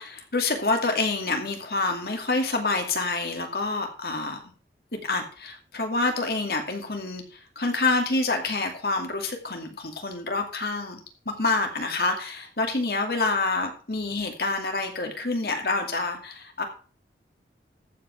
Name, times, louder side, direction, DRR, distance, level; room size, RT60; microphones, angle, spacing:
voice 1, 0.0-4.4 4.9-7.2 7.6-16.6, left 3 dB, 60° left, 4 dB, 2.4 m, -27 dB
14.0 x 5.3 x 5.8 m, 0.40 s
head